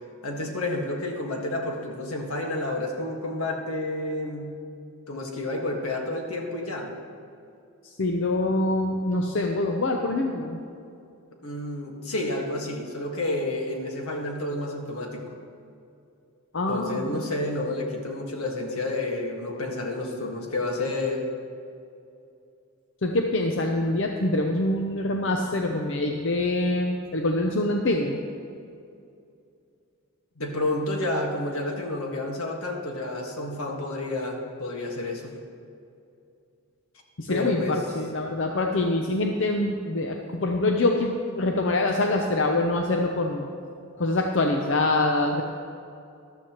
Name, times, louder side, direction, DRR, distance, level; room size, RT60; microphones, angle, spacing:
voice 1, 0.2-4.5 5.1-6.9 11.4-15.2 16.7-21.2 30.4-35.3 37.3-37.8, left 2 dB, 80° left, 1 dB, 1.6 m, -30 dB
voice 2, 7.8-10.6 16.5-17.2 23.0-28.2 37.2-43.5 44.0-45.4, left 2 dB, 55° left, 2 dB, 0.6 m, -25 dB
14.0 x 12.0 x 3.0 m, 2.5 s
head